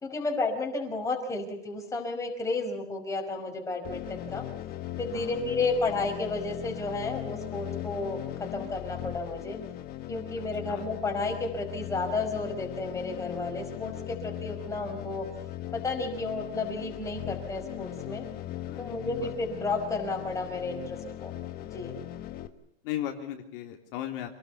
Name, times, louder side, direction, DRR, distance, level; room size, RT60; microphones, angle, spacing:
voice 1, 0.0-4.4 5.0-8.2 8.5-9.6 10.1-15.3 15.7-18.2 18.8-21.3 21.7-21.9, left 3 dB, 10° left, 1 dB, 5.2 m, -32 dB
sound 1, 3.8-22.5, left 13 dB, 25° left, 1.6 m, -39 dB
voice 2, 18.6-19.3 22.2-22.3 22.8-24.3, left 12 dB, 50° left, 3 dB, 3.3 m, -37 dB
28.0 x 19.5 x 6.9 m, 0.71 s
supercardioid pair, 170°, 34 cm